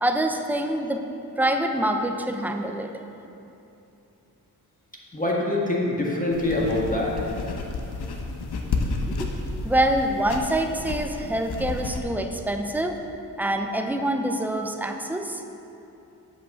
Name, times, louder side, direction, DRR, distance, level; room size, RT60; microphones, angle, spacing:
voice 1, 0.0-1.0 1.4-2.9 9.2-9.3 9.6-13.0 13.4-15.4, right 1 dB, 5° right, 5 dB, 0.6 m, -25 dB
voice 2, 5.1-7.1, left 1 dB, 20° left, -4 dB, 1.8 m, -24 dB
sound 1, 6.3-12.0, left 3 dB, 75° left, 0.9 m, -31 dB
8.1 x 5.3 x 7.1 m, 2.9 s
cardioid pair, 70°, 39 cm